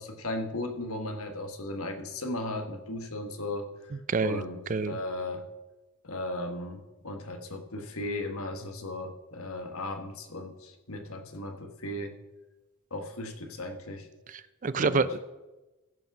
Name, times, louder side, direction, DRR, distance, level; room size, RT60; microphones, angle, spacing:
voice 1, 0.0-3.7 4.2-5.4 6.0-12.2 12.9-14.1 14.7-15.2, left 1 dB, 80° left, 6 dB, 1.4 m, -36 dB
voice 2, 4.1-4.4 4.7-5.0 14.3-15.2, right 4 dB, 35° right, 15 dB, 0.4 m, -27 dB
14.5 x 5.9 x 6.0 m, 1.1 s
head